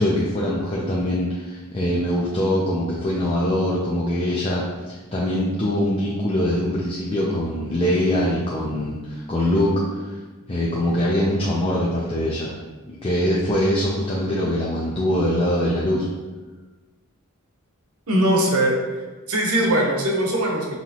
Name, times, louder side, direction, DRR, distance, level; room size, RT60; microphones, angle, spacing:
voice 1, 0.0-10.1 10.5-12.5 12.9-16.0, left 1 dB, 25° left, -5 dB, 0.5 m, -23 dB
voice 2, 18.1-18.8 19.3-20.8, right 1 dB, 85° right, 0 dB, 0.9 m, -20 dB
5.5 x 3.0 x 2.9 m, 1.3 s
head